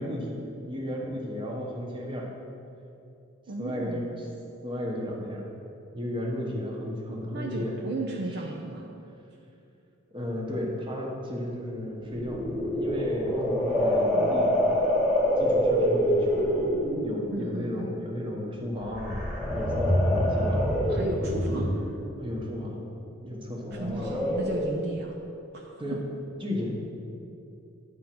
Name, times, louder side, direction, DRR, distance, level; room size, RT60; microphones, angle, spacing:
voice 1, 0.0-2.3 3.6-4.0 4.6-5.4 5.9-7.7 10.1-14.6 15.4-16.6 17.0-20.8 22.2-22.8 23.2-24.2 25.8-26.0 26.4-26.8, left 1 dB, 25° right, -1 dB, 1.0 m, -34 dB
voice 2, 3.5-4.1 7.1-8.9 14.1-14.9 17.3-18.0 20.9-21.7 23.7-25.2 25.5-25.8, right 2 dB, 50° right, 0 dB, 0.5 m, -35 dB
sound 1, 12.0-17.1 18.8-22.0 23.7-24.7, equal, 5° right, 1.5 m, -25 dB
9.3 x 3.7 x 5.9 m, 2.7 s
head